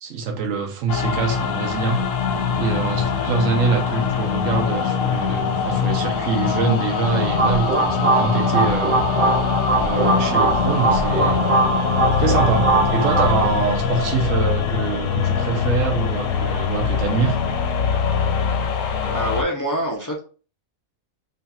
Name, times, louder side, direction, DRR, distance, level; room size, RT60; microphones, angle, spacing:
voice 1, 0.0-2.0 2.6-8.9 9.8-11.4 12.2-17.4, right 5 dB, 70° right, 1.1 m, -24 dB
sound 1, 0.9-19.4, left 7 dB, 75° left, 1.0 m, -23 dB
sound 2, 2.3-18.7, left 3 dB, 50° left, 0.9 m, -33 dB
sound 3, 7.0-13.5, right 3 dB, 55° right, 0.6 m, -21 dB
voice 2, 19.0-20.2, equal, 25° left, 0.4 m, -25 dB
3.1 x 2.4 x 4.1 m
omnidirectional pair, 1.4 m